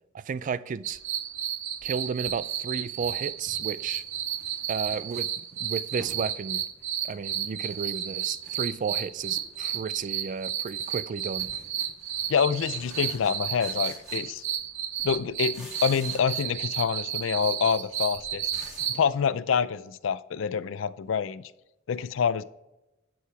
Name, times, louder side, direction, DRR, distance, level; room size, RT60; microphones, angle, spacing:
voice 1, 0.1-1.0 1.8-4.0 4.7-6.6 7.0-11.5, right 6 dB, 40° right, 0.3 m, -33 dB
sound 1, 0.8-19.0, right 10 dB, 80° right, 0.7 m, -32 dB
sound 2, 3.5-6.3 6.7-7.8 8.1-8.9 9.3-9.7 10.0-14.7 15.0-16.5 16.8-19.0, equal, 5° right, 2.4 m, -51 dB
voice 2, 12.3-14.4 15.0-18.5 18.9-21.4 21.9-22.4, left 6 dB, 75° left, 0.4 m, -27 dB
10.0 x 4.7 x 4.7 m
head